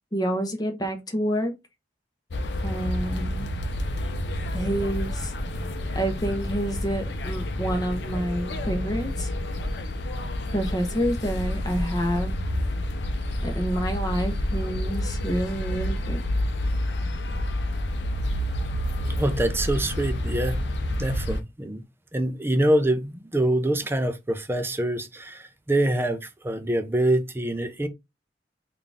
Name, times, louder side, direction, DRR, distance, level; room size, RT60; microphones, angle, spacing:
voice 1, 0.1-1.5 2.6-3.5 4.5-5.3 5.9-9.3 10.5-12.3 13.4-16.2, right 1 dB, 20° left, 0.9 m, -28 dB
sound 1, 2.3-21.4, left 1 dB, 65° left, 0.6 m, -29 dB
voice 2, 19.2-20.6 21.0-21.8 22.1-27.9, right 1 dB, 15° right, 0.4 m, -25 dB
3.8 x 2.5 x 3.4 m
head